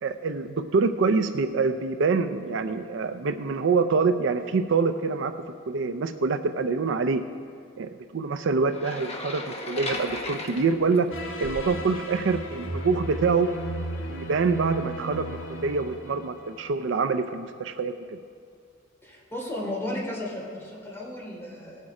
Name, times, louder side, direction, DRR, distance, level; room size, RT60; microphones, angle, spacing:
voice 1, 0.0-5.3 5.7-7.2 7.8-13.5 14.1-18.2, right 4 dB, 65° right, 10 dB, 0.4 m, -25 dB
sound 1, 8.7-11.7, left 2 dB, 30° left, 0.9 m, -36 dB
sound 2, 11.1-16.9, right 1 dB, 70° left, 1.2 m, -35 dB
voice 2, 19.0-21.8, left 1 dB, 10° left, -5 dB, 2.9 m, -34 dB
18.5 x 6.4 x 4.8 m, 2.3 s
head